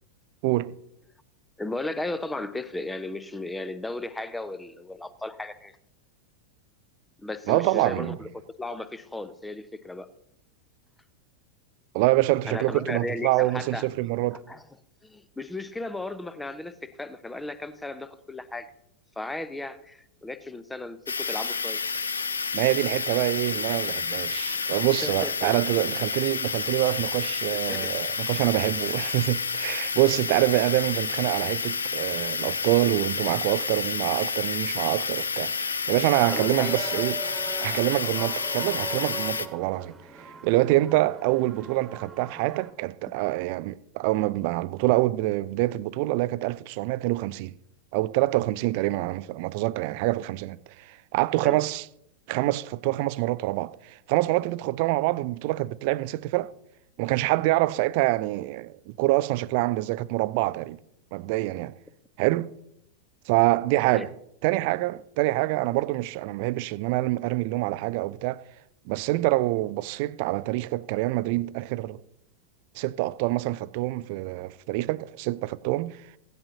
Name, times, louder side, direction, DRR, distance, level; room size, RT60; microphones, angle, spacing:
voice 1, 0.4-0.7 7.5-8.2 11.9-14.4 22.5-37.2 37.6-39.9 40.2-47.5 47.9-51.9 52.3-56.5 57.0-60.8 61.1-61.7 62.2-62.5 63.3-64.1 64.4-68.4 68.9-72.0 72.8-76.0, right 18 dB, 45° right, 0.4 m, -26 dB
voice 2, 1.6-5.7 7.2-8.3 8.6-10.1 12.5-13.9 14.5-14.6 15.0-18.7 19.2-21.8 24.4-24.7 25.0-25.5 27.7-27.9 36.3-36.8 51.4-51.6 63.9-64.1, left 2 dB, 5° left, 0.7 m, -35 dB
sound 1, 21.1-39.5, left 5 dB, 75° left, 0.5 m, -30 dB
sound 2, 36.1-42.7, right 4 dB, 15° right, 1.5 m, -40 dB
15.5 x 11.5 x 2.8 m
figure-of-eight pair, 90°, 0 cm